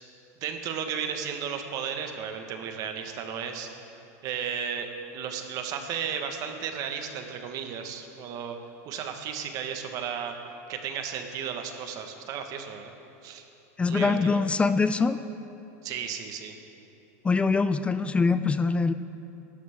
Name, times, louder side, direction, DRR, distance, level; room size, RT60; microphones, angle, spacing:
voice 1, 0.4-3.7 4.2-8.6 8.8-10.3 10.7-12.9 13.2-13.5 13.9-14.4 15.8-16.6, right 7 dB, 45° right, 5 dB, 1.4 m, -34 dB
voice 2, 13.8-15.2 17.2-18.9, left 4 dB, 15° left, 12 dB, 0.4 m, -23 dB
18.0 x 12.5 x 3.6 m, 2.8 s
supercardioid pair, 120°, 8 cm